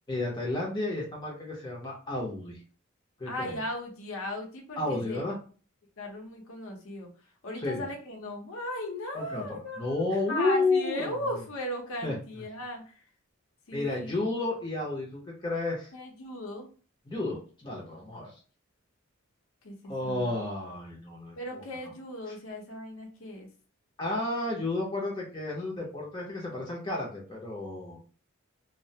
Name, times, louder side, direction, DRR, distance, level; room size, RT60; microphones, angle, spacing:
voice 1, 0.1-2.6 3.2-3.6 4.8-5.4 7.6-7.9 9.1-11.1 12.0-12.1 13.7-15.9 17.1-18.3 19.9-21.6 24.0-28.1, left 2 dB, 20° left, -3 dB, 0.6 m, -32 dB
voice 2, 3.2-5.3 6.0-13.0 13.7-14.2 15.9-16.7 19.6-20.3 21.4-23.5, left 1 dB, 80° left, 1 dB, 0.7 m, -37 dB
2.3 x 2.1 x 2.7 m, 0.39 s
head